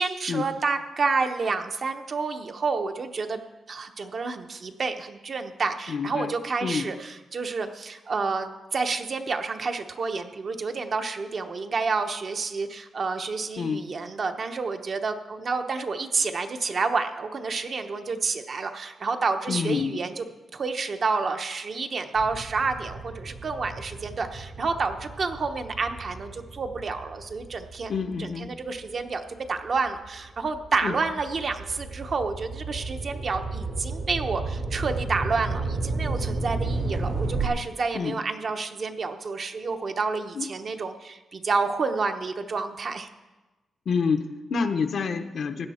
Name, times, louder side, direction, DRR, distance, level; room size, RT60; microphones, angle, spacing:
voice 1, 0.0-3.4 3.7-20.2 20.5-27.9 28.2-43.1, right 4 dB, 45° right, 6 dB, 0.9 m, -29 dB
voice 2, 5.9-6.3 6.6-6.9 13.6-13.9 19.5-20.0 27.9-28.6 30.8-31.0 37.9-38.2 40.3-40.5 43.9-45.7, left 5 dB, 60° left, 8 dB, 0.8 m, -28 dB
sound 1, 22.2-28.9 29.5-37.5, right 3 dB, 75° right, 2.2 m, -33 dB
16.5 x 9.9 x 4.3 m, 1.1 s
wide cardioid pair, 135°, 0 cm